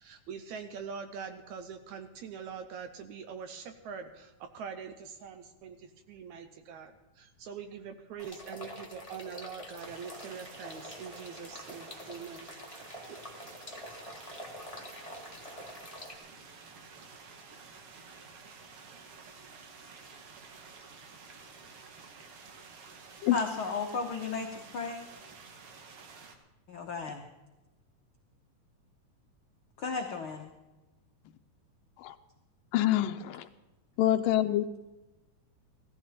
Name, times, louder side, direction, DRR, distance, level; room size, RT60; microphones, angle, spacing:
voice 1, 0.0-12.5 13.1-13.2, right 6 dB, 75° right, 2.0 m, -43 dB
sound 1, 8.2-16.1, left 1 dB, 30° left, 0.5 m, -46 dB
sound 2, 9.8-26.3, right 5 dB, 55° right, 1.9 m, -51 dB
voice 2, 23.3-25.0 26.7-27.2 29.8-30.5, left 4 dB, 65° left, 1.3 m, -34 dB
voice 3, 32.7-33.5 34.0-34.7, left 13 dB, 85° left, 2.4 m, -26 dB
17.0 x 14.0 x 4.3 m
omnidirectional pair, 3.8 m